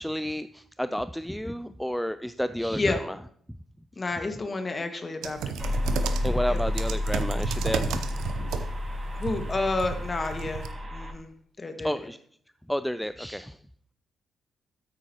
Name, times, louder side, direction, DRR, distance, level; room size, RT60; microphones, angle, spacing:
voice 1, 0.0-3.2 6.2-8.0 11.8-12.2 12.7-13.6, equal, 5° left, 13 dB, 0.4 m, -30 dB
voice 2, 4.0-5.8 6.5-6.6 9.1-10.6 10.9-11.3 11.6-12.1, left 3 dB, 30° left, 6 dB, 1.8 m, -30 dB
sound 1, 5.2-10.7, right 7 dB, 65° right, 0.8 m, -34 dB
sound 2, 5.6-11.1, left 1 dB, 20° right, 2.2 m, -30 dB
13.0 x 9.7 x 3.0 m, 0.63 s
figure-of-eight pair, 40°, 0 cm